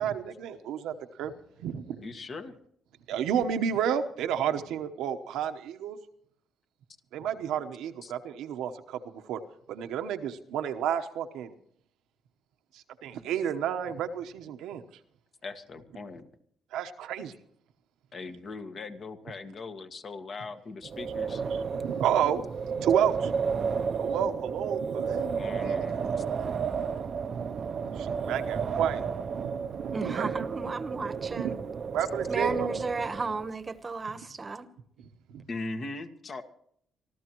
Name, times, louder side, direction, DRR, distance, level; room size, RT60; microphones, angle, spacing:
voice 1, 0.0-1.3 1.6-2.0 3.1-6.0 7.1-9.4 9.7-11.5 12.7-14.8 16.7-17.4 21.5-23.4 23.7-25.5 26.2-26.3 26.6-29.1 29.3-30.3 31.4-31.5 31.9-32.7 35.0-35.4, right 9 dB, 90° right, 7 dB, 1.1 m, -31 dB
voice 2, 2.0-2.5 8.0-8.1 15.4-16.2 18.1-21.4 25.2-26.1 35.5-36.4, left 3 dB, 50° left, 7 dB, 1.6 m, -40 dB
Wind, 20.8-33.4, right 6 dB, 50° right, 0.6 m, -32 dB
voice 3, 29.9-31.6 32.3-34.7, right 3 dB, 30° right, 12 dB, 1.1 m, -33 dB
25.0 x 14.0 x 3.1 m, 0.67 s
cardioid pair, 90°, 0 cm